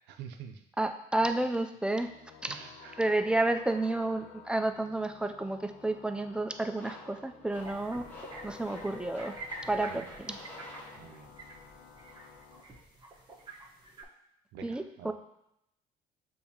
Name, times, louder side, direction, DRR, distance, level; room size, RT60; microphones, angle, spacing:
voice 1, 0.1-0.6 2.5-2.9 9.8-10.0 11.0-11.3 14.5-15.1, right 8 dB, 85° right, 6 dB, 0.5 m, -47 dB
voice 2, 0.8-2.1 2.4-2.6 3.0-8.0 8.4-9.4 9.7-10.4 14.6-15.1, right 2 dB, 5° right, 7 dB, 0.3 m, -31 dB
sound 1, 1.9-12.6, left 6 dB, 75° left, 0.6 m, -53 dB
sound 2, 6.7-11.5, left 2 dB, 10° left, 0.8 m, -50 dB
sound 3, 7.5-14.0, right 2 dB, 25° right, 0.9 m, -48 dB
6.7 x 2.7 x 2.8 m, 0.81 s
cardioid pair, 110°, 17 cm